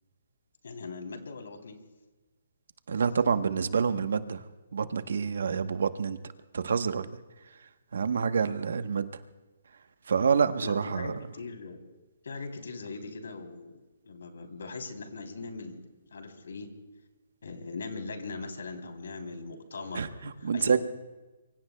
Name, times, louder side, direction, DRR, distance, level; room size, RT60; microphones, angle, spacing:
voice 1, 0.6-1.8 10.6-11.8 12.2-13.8 14.1-15.8 16.1-16.7 17.4-20.8, left 3 dB, 80° left, 5 dB, 3.3 m, -40 dB
voice 2, 2.9-4.4 4.7-6.2 6.5-7.2 7.9-9.1 10.1-11.1 19.9-20.8, right 6 dB, 70° right, 10 dB, 1.1 m, -27 dB
26.0 x 24.0 x 2.3 m, 1.2 s
hypercardioid pair, 170°, 0 cm